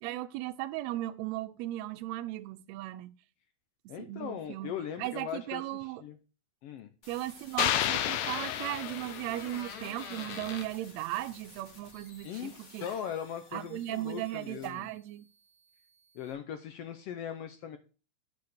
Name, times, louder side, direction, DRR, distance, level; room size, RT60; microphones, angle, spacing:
voice 1, 0.0-3.1 3.8-6.0 7.1-12.9 13.5-15.3, right 15 dB, 80° right, 1.7 m, -37 dB
voice 2, 3.9-6.2 6.6-6.9 12.2-14.9 16.1-17.8, left 9 dB, 75° left, 1.5 m, -39 dB
sound 1, 7.0-16.3, left 3 dB, 30° left, 1.5 m, -56 dB
sound 2, 7.6-9.7, left 11 dB, 90° left, 1.2 m, -31 dB
Door, 8.2-10.7 12.5-12.6 12.8-13.2, left 6 dB, 55° left, 1.7 m, -44 dB
8.4 x 4.7 x 6.5 m
omnidirectional pair, 3.3 m